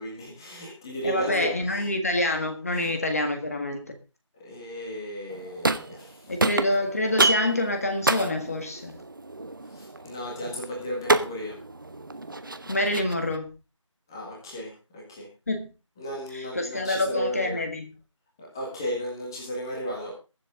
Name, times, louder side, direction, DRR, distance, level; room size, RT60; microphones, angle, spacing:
voice 1, 0.0-1.9 2.7-2.9 4.4-6.1 9.7-11.5 14.1-15.3 16.0-17.6 18.4-20.1, equal, 10° left, -3 dB, 1.7 m, -34 dB
voice 2, 1.0-3.9 6.3-9.0 12.7-13.5 15.5-15.7 16.3-17.9, left 1 dB, 30° left, 5 dB, 1.7 m, -27 dB
sound 1, 5.3-6.1 6.4-13.4, right 2 dB, 40° right, 0.9 m, -29 dB
22.0 x 7.6 x 3.7 m, 0.31 s
figure-of-eight pair, 175°, 17 cm